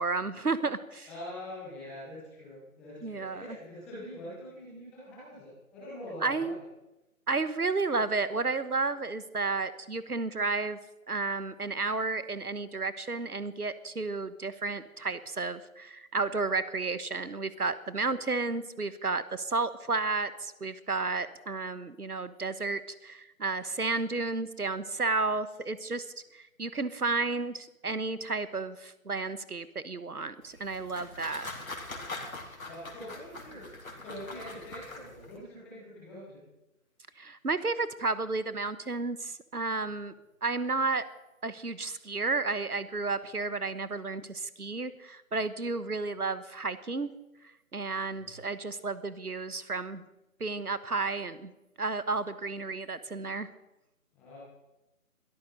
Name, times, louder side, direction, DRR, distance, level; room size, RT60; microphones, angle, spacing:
voice 1, 0.0-1.1 3.0-3.6 6.2-6.6 7.3-10.8 11.1-26.1 26.3-31.5 37.2-40.1 40.4-41.0 41.4-47.1 47.7-50.0 50.4-51.5 51.8-53.5, right 3 dB, 85° right, 14 dB, 1.3 m, -32 dB
voice 2, 1.0-6.6 32.6-36.4 48.1-48.3 54.1-54.4, left 1 dB, ahead, -8 dB, 1.3 m, -44 dB
sound 1, 30.4-35.4, left 2 dB, 65° left, 4.1 m, -43 dB
22.0 x 14.0 x 4.1 m, 0.96 s
figure-of-eight pair, 155°, 44 cm